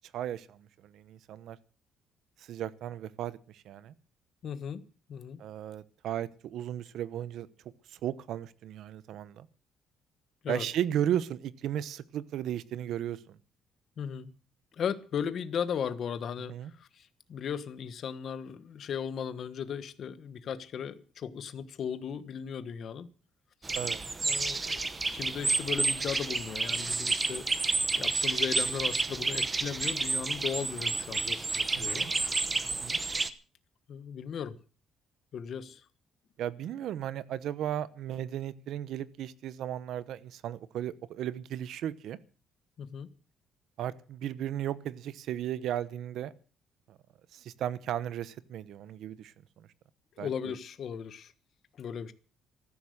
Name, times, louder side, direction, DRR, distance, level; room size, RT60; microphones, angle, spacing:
voice 1, 0.1-1.6 2.4-3.9 5.4-7.5 7.9-9.5 10.5-13.4 16.5-16.7 23.7-24.0 31.7-32.1 32.6-33.0 36.4-42.2 43.8-46.3 46.9-47.0 47.3-49.7 50.2-50.3, right 11 dB, 70° right, 1.0 m, -35 dB
voice 2, 4.4-4.8 5.1-5.4 10.4-10.7 14.0-14.3 14.7-23.1 24.2-24.8 25.1-27.7 28.0-32.2 33.9-34.6 35.3-35.8 42.8-43.1 50.2-51.3 51.8-52.1, left 7 dB, 50° left, 1.3 m, -37 dB
sound 1, 23.6-33.3, right 3 dB, 20° right, 1.0 m, -30 dB
14.5 x 13.0 x 6.6 m
cardioid pair, 160°, 0 cm